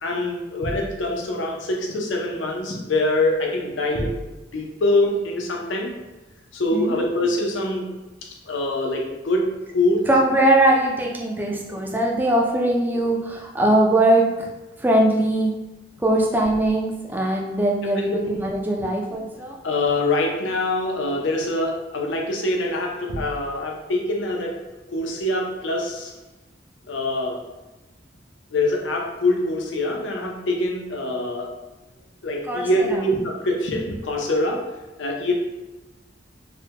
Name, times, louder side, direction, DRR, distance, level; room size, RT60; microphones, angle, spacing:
voice 1, 0.0-6.0 6.5-7.9 8.2-10.1 19.6-24.6 24.9-26.1 26.9-27.4 28.5-31.5 32.2-34.6 35.0-35.3, left 1 dB, 80° left, 1 dB, 0.5 m, -24 dB
voice 2, 10.1-14.5 14.8-15.5 16.0-19.6 32.5-33.0, right 1 dB, 10° right, -1 dB, 0.3 m, -21 dB
3.3 x 2.1 x 2.8 m, 1.1 s
head